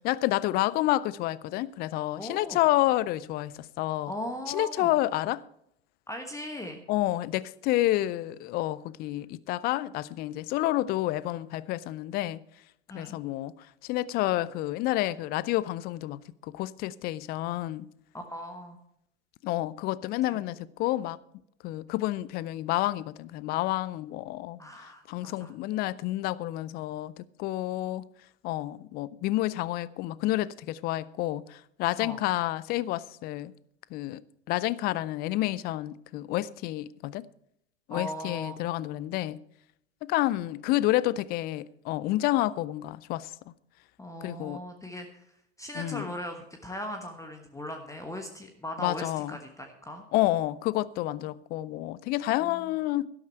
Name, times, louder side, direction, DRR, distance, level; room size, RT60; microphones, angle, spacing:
voice 1, 0.0-4.1 4.5-5.4 6.9-12.4 12.9-13.5 13.8-17.9 19.4-21.2 21.6-28.0 28.4-33.5 33.9-34.2 34.5-37.2 37.9-39.4 40.0-43.3 44.2-44.6 45.7-46.1 48.8-49.4 50.1-53.1, left 16 dB, 25° left, 0.4 m, -29 dB
voice 2, 2.2-2.6 4.1-5.0 6.1-6.8 12.9-13.2 18.1-18.8 20.3-20.5 24.6-25.5 32.0-32.2 37.9-38.8 44.0-45.2 45.6-50.0 52.4-52.5, equal, 10° left, 1.3 m, -39 dB
12.5 x 12.0 x 4.5 m
figure-of-eight pair, 95°, 37 cm